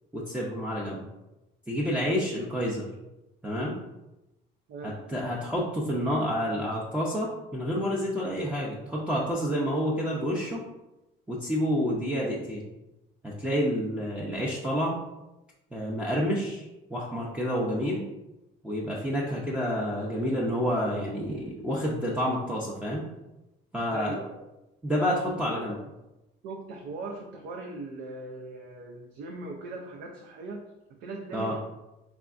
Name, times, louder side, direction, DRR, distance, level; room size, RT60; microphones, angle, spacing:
voice 1, 0.1-1.1 1.7-2.9 3.4-3.8 4.8-10.6 11.3-12.7 13.2-15.0 15.7-16.6 16.9-18.0 18.6-23.0 23.7-24.1 24.8-25.8 31.3-31.6, equal, 5° right, -5 dB, 0.5 m, -29 dB
voice 2, 4.7-5.0 23.9-24.3 25.5-25.9 26.4-31.6, right 3 dB, 65° right, 1 dB, 0.5 m, -39 dB
3.5 x 3.4 x 2.4 m, 0.96 s
cardioid pair, 110°, 21 cm